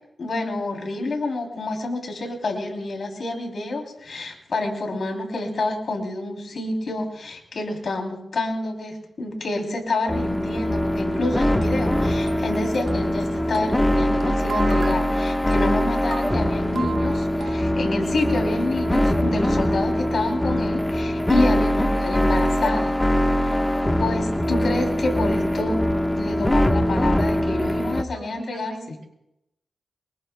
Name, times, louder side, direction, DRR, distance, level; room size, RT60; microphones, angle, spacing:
voice 1, 0.2-23.0 23.4-23.6 24.0-25.8 26.2-29.0, left 2 dB, 65° left, 2 dB, 3.3 m, -28 dB
sound 1, 10.1-28.0, left 1 dB, 15° left, 1.2 m, -22 dB
sound 2, 11.1-17.5, right 5 dB, 85° right, 1.1 m, -37 dB
voice 2, 28.1-29.0, right 4 dB, 65° right, 1 dB, 4.6 m, -43 dB
24.0 x 22.0 x 2.3 m, 0.84 s
cardioid pair, 75°, 0 cm